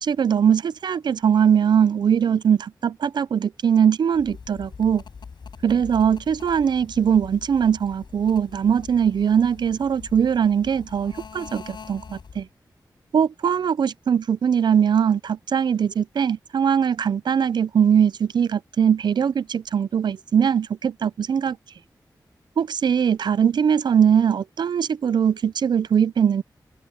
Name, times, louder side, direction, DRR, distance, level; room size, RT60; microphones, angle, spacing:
voice 1, 0.0-5.0 5.6-12.5 13.1-21.6 22.6-26.4, right 8 dB, 80° right, 0.4 m, -21 dB
sound 1, 4.1-12.5, left 5 dB, 80° left, 7.1 m, -43 dB
open air
wide cardioid pair, 80°, 8 cm